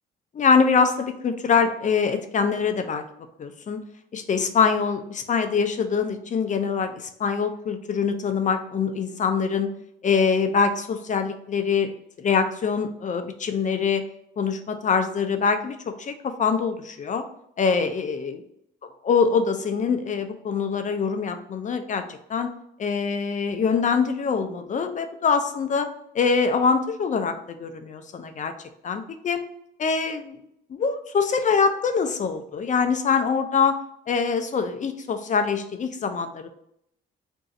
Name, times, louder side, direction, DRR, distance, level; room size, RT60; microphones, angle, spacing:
voice 1, 0.3-3.0 3.4-3.8 4.1-9.7 10.0-11.9 12.2-14.0 14.4-17.2 17.6-18.4 19.0-22.5 22.8-25.9 26.1-28.5 28.8-29.4 29.8-30.3 30.7-33.7 34.1-36.5, left 5 dB, 40° left, 7 dB, 0.4 m, -24 dB
2.6 x 2.4 x 4.0 m, 0.74 s
cardioid pair, 90°, 20 cm